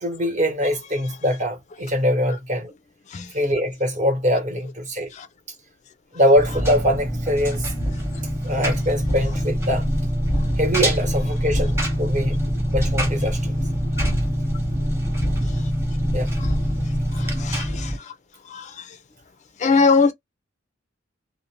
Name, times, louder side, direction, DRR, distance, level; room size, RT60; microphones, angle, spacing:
voice 1, 0.0-2.7 3.3-5.1 6.1-7.7 8.4-9.9 10.6-12.4 12.7-13.5 16.1-16.3, equal, 40° right, 0.9 m, -23 dB
Engine, 6.3-18.0, equal, 15° right, 0.8 m, -24 dB
voice 2, 17.1-18.1 18.5-18.9 19.6-20.1, left 4 dB, 35° left, 0.4 m, -22 dB
2.4 x 2.1 x 2.9 m
head